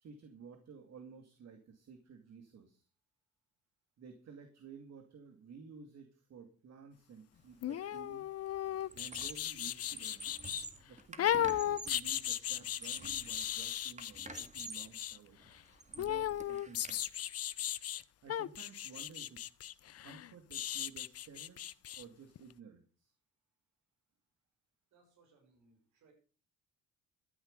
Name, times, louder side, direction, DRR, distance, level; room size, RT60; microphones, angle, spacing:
voice 1, 0.0-2.9 4.0-8.3 8.9-10.3 10.9-15.5 16.0-17.0 18.2-19.4 20.0-23.1, right 6 dB, 60° right, 6 dB, 2.3 m, -54 dB
sound 1, 7.6-10.7 11.2-15.2 16.0-18.0 18.3-22.0 22.4-22.5, left 11 dB, 55° left, 0.7 m, -36 dB
Squeak, 7.7-8.0 8.3-9.5 9.8-12.1 12.6-13.6 14.0-14.9 15.4-17.0, right 3 dB, 25° right, 2.1 m, -49 dB
voice 2, 24.9-26.1, right 4 dB, 75° right, 1 dB, 6.5 m, -68 dB
12.5 x 9.9 x 5.3 m, 0.37 s
cardioid pair, 90°, 30 cm